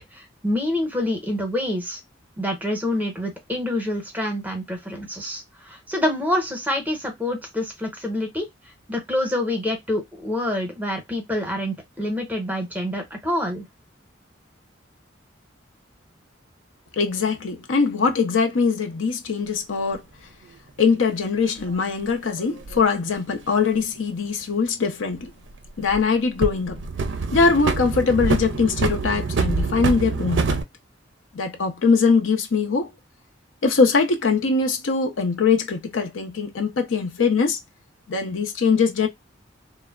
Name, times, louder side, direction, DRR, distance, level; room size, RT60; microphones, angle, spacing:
voice 1, 0.0-2.0 2.4-8.5 8.9-13.6, left 1 dB, 10° right, 0.7 m, -27 dB
voice 2, 16.9-20.0 20.8-25.3 25.8-26.8 27.3-30.6 31.3-32.9 33.6-37.6 38.1-39.1, left 5 dB, 85° left, 0.6 m, -22 dB
sound 1, 19.9-20.0 21.6-22.8 25.1-26.0 26.4-30.6, right 4 dB, 65° right, 0.4 m, -26 dB
3.1 x 2.0 x 2.2 m
head